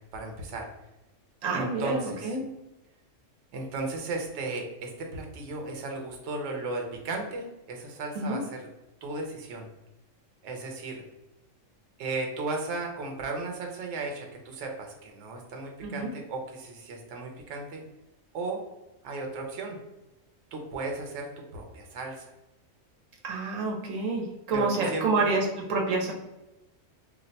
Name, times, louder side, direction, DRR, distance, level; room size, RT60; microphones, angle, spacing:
voice 1, 0.1-0.7 1.5-2.4 3.5-8.7 9.0-9.7 10.4-11.0 12.0-17.8 18.3-18.6 19.0-19.8 20.5-22.3 24.5-25.3, right 3 dB, 70° right, 2 dB, 0.9 m, -35 dB
voice 2, 1.4-2.4 8.2-8.4 15.8-16.1 23.2-26.1, right 3 dB, 85° right, 0 dB, 1.1 m, -28 dB
2.5 x 2.1 x 3.9 m, 0.98 s
omnidirectional pair, 1.3 m